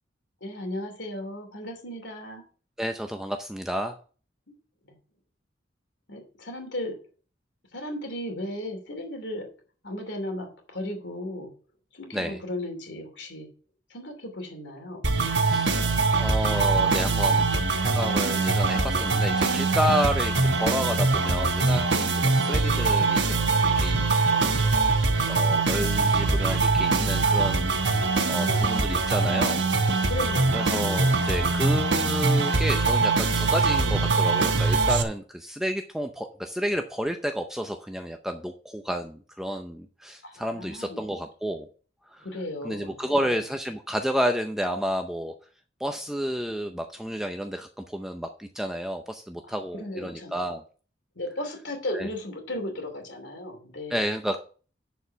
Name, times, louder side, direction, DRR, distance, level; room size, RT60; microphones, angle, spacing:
voice 1, 0.4-2.4 4.8-4.9 6.1-7.0 7.7-9.5 9.8-11.5 11.9-13.5 13.9-15.0 22.1-22.3 28.3-28.7 30.1-30.7 40.2-41.0 42.2-43.4 49.5-50.4 51.1-54.0, left 1 dB, 80° left, 3 dB, 2.8 m, -35 dB
voice 2, 2.8-4.0 12.1-12.4 15.5-15.8 16.1-17.5 17.8-23.4 23.8-24.1 25.3-30.1 30.5-41.7 42.1-42.3 42.6-45.3 45.8-50.6 51.9-52.1 53.9-54.4, equal, 5° right, 5 dB, 0.5 m, -31 dB
sound 1, 15.0-35.0, right 3 dB, 70° right, 1.2 m, -23 dB
10.0 x 4.7 x 5.9 m, 0.40 s
head